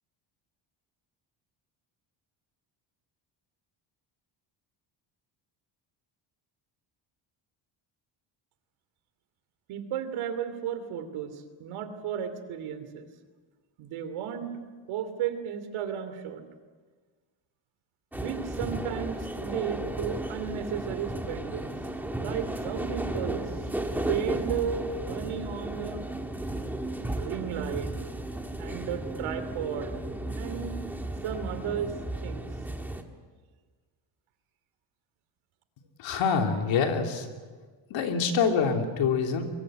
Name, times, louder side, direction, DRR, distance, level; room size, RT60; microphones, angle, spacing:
voice 1, 9.7-13.1 13.8-14.5 14.9-16.4 18.1-21.7 22.1-23.5 24.1-26.0 27.2-27.9 28.6-30.0 30.4-30.8 31.2-31.9 32.2-32.5, right 8 dB, 90° right, 9 dB, 3.0 m, -34 dB
sound 1, 18.1-33.0, right 1 dB, 5° right, 1.7 m, -34 dB
voice 2, 36.0-37.3 37.9-39.4, left 5 dB, 70° left, 3 dB, 3.3 m, -25 dB
23.5 x 23.5 x 7.8 m, 1.4 s
cardioid pair, 155°, 47 cm